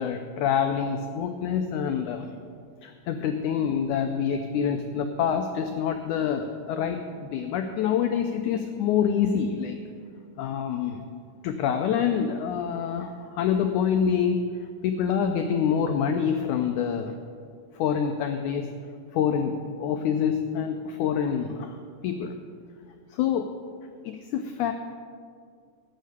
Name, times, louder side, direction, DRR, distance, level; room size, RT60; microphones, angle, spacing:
voice 1, 0.0-2.3 2.8-9.8 10.4-11.0 11.4-14.4 14.8-17.1 17.8-18.7 19.1-21.8 22.0-22.3 23.1-23.5 24.0-24.7, left 7 dB, 85° left, 6 dB, 1.7 m, -26 dB
13.0 x 6.6 x 8.2 m, 2.2 s
omnidirectional pair, 4.2 m